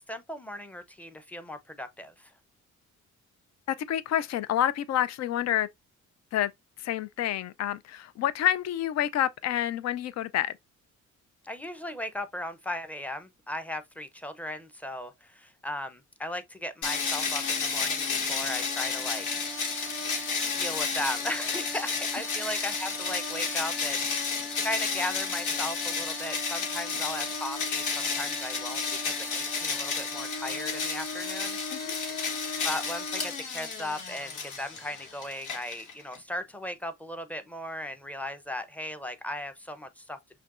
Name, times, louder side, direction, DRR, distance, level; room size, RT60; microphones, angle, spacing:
voice 1, 0.0-2.3 11.4-19.3 20.5-31.6 32.6-40.4, left 1 dB, 5° left, 0.6 m, -37 dB
voice 2, 3.7-5.7 6.3-6.5 6.8-10.6 31.7-32.0, left 11 dB, 60° left, 0.5 m, -28 dB
sound 1, 16.8-36.2, left 4 dB, 75° left, 1.4 m, -31 dB
5.7 x 2.3 x 2.4 m
cardioid pair, 90°, 30 cm